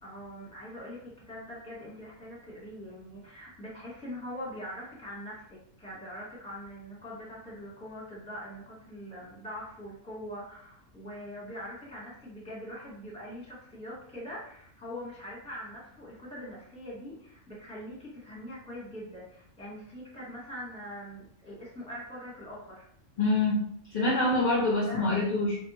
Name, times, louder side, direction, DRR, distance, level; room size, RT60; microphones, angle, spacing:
voice 1, 0.0-22.9 24.1-24.3 24.8-25.1, equal, 5° left, -6 dB, 0.9 m, -43 dB
voice 2, 23.2-23.6 23.9-25.6, left 2 dB, 65° left, -3 dB, 0.4 m, -25 dB
2.7 x 2.3 x 2.7 m, 0.67 s
omnidirectional pair, 1.3 m